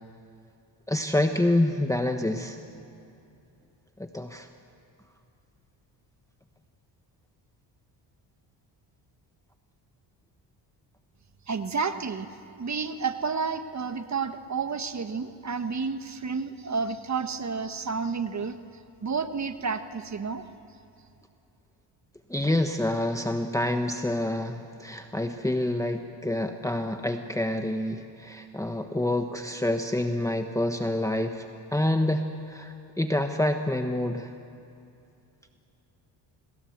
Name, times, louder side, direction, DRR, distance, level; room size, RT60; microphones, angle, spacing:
voice 1, 0.9-2.6 4.0-4.5 22.3-31.5 31.7-34.3, left 1 dB, 5° left, 5 dB, 1.3 m, -27 dB
voice 2, 11.5-12.3 12.6-18.6 19.0-20.4, right 5 dB, 35° right, 9 dB, 1.4 m, -30 dB
28.0 x 21.0 x 7.9 m, 2.7 s
cardioid pair, 75°, 48 cm